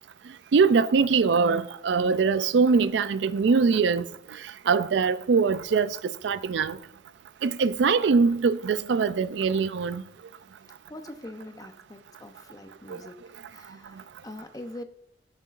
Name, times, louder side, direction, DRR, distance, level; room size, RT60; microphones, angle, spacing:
voice 1, 0.5-4.1 4.7-6.8 7.4-10.0, right 5 dB, 85° right, 0.4 m, -22 dB
voice 2, 10.9-13.2 13.5-14.8, left 1 dB, 20° left, 0.6 m, -43 dB
13.0 x 6.6 x 2.5 m
head